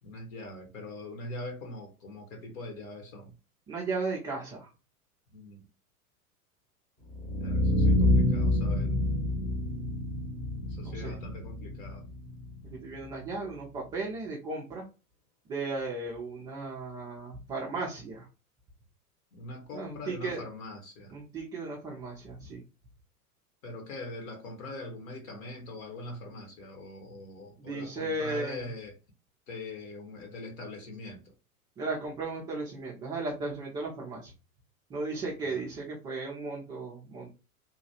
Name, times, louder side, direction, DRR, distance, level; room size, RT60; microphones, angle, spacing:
voice 1, 0.0-3.3 5.3-5.6 7.4-9.0 10.6-12.1 19.3-21.2 23.6-29.0 29.5-31.3 35.4-35.7, left 2 dB, 60° left, 1.5 m, -42 dB
voice 2, 3.7-4.7 10.8-11.2 12.8-14.8 15.5-18.3 19.7-20.4 21.1-22.6 27.6-28.7 31.8-34.3 34.9-37.3, right 3 dB, 10° right, 0.3 m, -35 dB
sound 1, 7.1-13.1, left 1 dB, 20° left, 0.9 m, -28 dB
3.1 x 2.3 x 2.8 m
hypercardioid pair, 100°, 45 cm